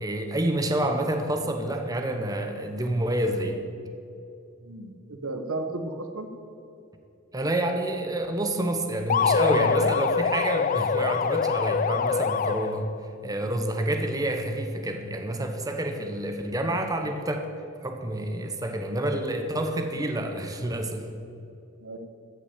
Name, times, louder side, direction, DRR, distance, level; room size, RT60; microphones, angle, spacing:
voice 1, 0.0-3.6 7.3-12.8 13.2-17.5 17.8-21.1, right 1 dB, 15° right, 5 dB, 0.8 m, -28 dB
voice 2, 4.6-6.3 21.8-22.0, right 2 dB, 85° right, 7 dB, 1.2 m, -34 dB
sound 1, 9.1-13.0, left 6 dB, 40° left, 0.3 m, -24 dB
14.5 x 5.9 x 8.4 m, 2.7 s
head